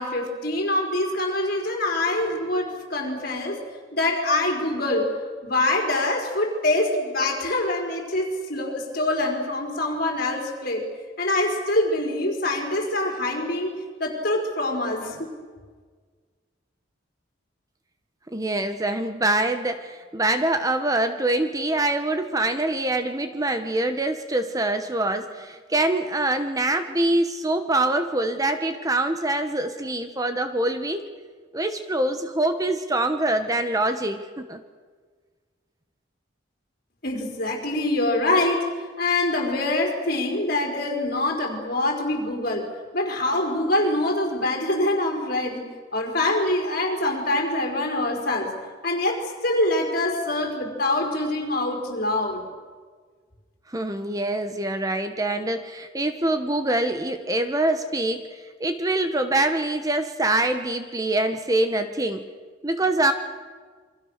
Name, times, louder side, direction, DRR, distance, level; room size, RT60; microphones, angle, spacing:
voice 1, 0.0-3.6 3.9-5.1 5.4-10.8 11.2-15.3 37.0-38.7 39.0-42.7 42.9-45.7 45.9-48.5 48.8-52.4, left 2 dB, 55° left, 2 dB, 4.9 m, -25 dB
voice 2, 18.3-31.0 31.5-34.6 53.7-58.2 58.6-62.3 62.6-63.1, right 2 dB, 20° right, 8 dB, 1.1 m, -24 dB
28.0 x 24.0 x 6.6 m, 1.5 s
head